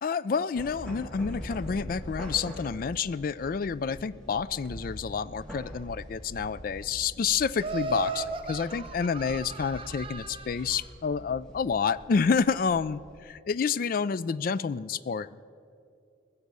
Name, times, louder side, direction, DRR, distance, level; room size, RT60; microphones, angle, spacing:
voice 1, 0.0-15.4, left 5 dB, 50° left, 18 dB, 0.3 m, -29 dB
sound 1, 0.5-13.2, equal, 5° left, 2.1 m, -44 dB
Laughter, 7.6-10.8, right 4 dB, 30° right, 0.8 m, -36 dB
20.0 x 7.2 x 6.8 m, 2.5 s
head